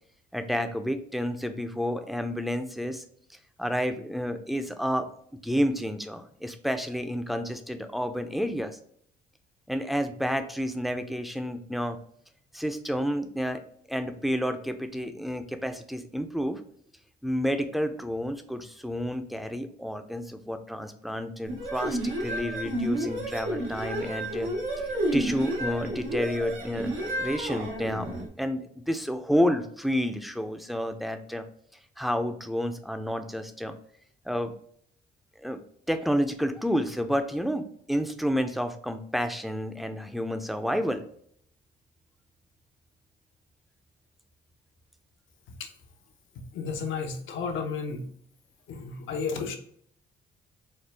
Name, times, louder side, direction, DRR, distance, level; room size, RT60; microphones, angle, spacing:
voice 1, 0.3-3.0 3.6-5.1 5.4-8.8 9.7-12.0 12.5-13.6 13.9-16.6 17.2-24.5 25.1-31.4 32.0-33.7 34.3-34.5 35.4-41.0, equal, ahead, 7 dB, 0.5 m, -30 dB
sound 1, 21.5-28.3, right 1 dB, 90° right, 1.0 m, -31 dB
voice 2, 46.5-48.1 48.7-49.5, left 5 dB, 75° left, 4 dB, 0.9 m, -32 dB
4.3 x 2.2 x 3.3 m, 0.65 s
cardioid pair, 90°, 20 cm